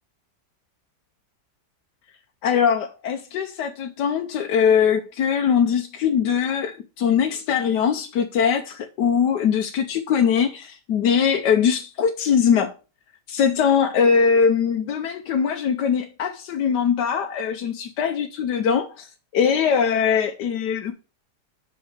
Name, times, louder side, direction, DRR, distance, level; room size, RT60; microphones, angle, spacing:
voice 1, 2.4-12.7 13.3-20.9, left 7 dB, 85° left, 1.4 m, -21 dB
5.7 x 5.5 x 6.5 m
omnidirectional pair, 1.8 m